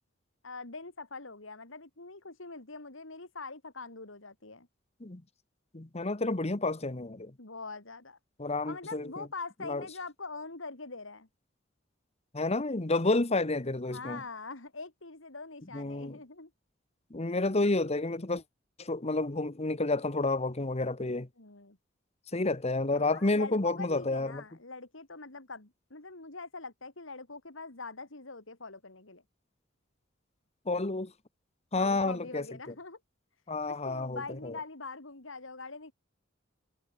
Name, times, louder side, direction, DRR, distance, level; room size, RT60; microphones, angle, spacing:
voice 1, 0.4-4.7 7.4-8.2 8.6-11.3 13.8-16.5 21.4-21.8 22.9-29.2 31.8-33.0 33.7-35.9, left 3 dB, 75° left, 2.9 m, -43 dB
voice 2, 5.7-7.3 8.4-9.3 9.7-9.8 12.3-14.2 15.7-16.2 17.1-18.4 18.8-21.3 22.3-24.4 30.7-31.1 31.7-32.4 33.5-34.5, left 2 dB, 35° left, 1.2 m, -30 dB
head